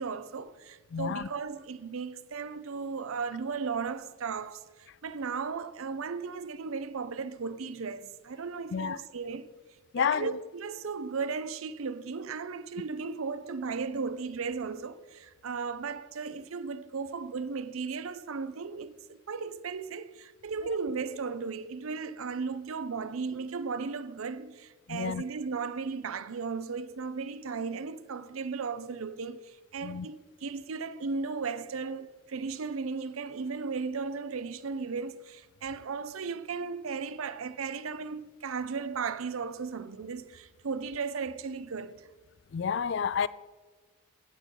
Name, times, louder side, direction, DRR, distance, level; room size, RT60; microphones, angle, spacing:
voice 1, 0.0-9.5 10.0-42.1, right 5 dB, 80° right, 0.6 m, -36 dB
voice 2, 0.9-1.3 8.7-9.0 9.9-10.3 24.9-25.2 29.8-30.1 42.5-43.3, left 7 dB, 55° left, 0.3 m, -29 dB
16.0 x 5.3 x 6.3 m
head